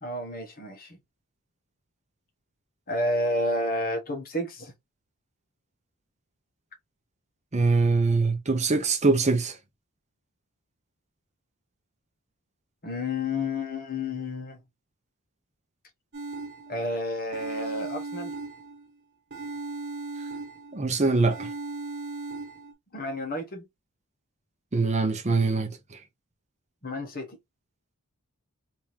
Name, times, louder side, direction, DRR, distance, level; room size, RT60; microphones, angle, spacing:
voice 1, 0.0-1.0 2.9-4.7 12.8-14.6 16.7-18.3 22.9-23.6 26.8-27.4, left 1 dB, 40° left, 1.3 m, -30 dB
voice 2, 7.5-9.5 20.7-21.5 24.7-25.8, right 3 dB, 30° right, 0.7 m, -23 dB
sound 1, 16.1-16.9 17.3-18.9 19.3-20.9 21.3-22.7, right 3 dB, 50° right, 1.5 m, -37 dB
3.5 x 2.9 x 3.1 m
head